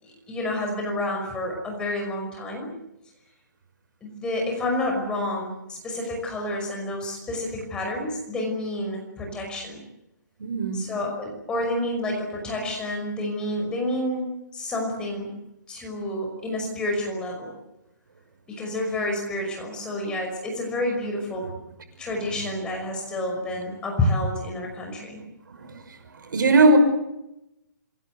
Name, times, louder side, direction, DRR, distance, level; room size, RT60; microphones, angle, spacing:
voice 1, 0.0-2.7 4.0-9.8 10.7-15.3 15.7-17.5 18.5-21.5 22.0-25.2, left 1 dB, 10° left, 1 dB, 5.6 m, -29 dB
voice 2, 10.4-10.9 25.6-25.7 26.3-26.8, right 2 dB, 75° right, 8 dB, 6.2 m, -19 dB
27.0 x 21.5 x 8.2 m, 0.90 s
hypercardioid pair, 170°, 11 cm